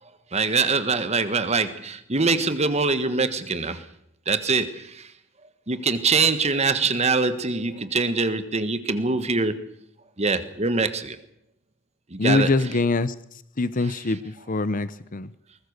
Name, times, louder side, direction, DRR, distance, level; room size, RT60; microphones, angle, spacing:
voice 1, 0.3-3.8 4.3-5.1 5.7-9.6 10.2-11.2 12.1-12.5, right 4 dB, 35° right, 1.5 m, -23 dB
voice 2, 12.2-13.1 13.6-14.2 14.5-15.3, left 3 dB, 45° left, 0.8 m, -23 dB
22.0 x 20.0 x 6.7 m
head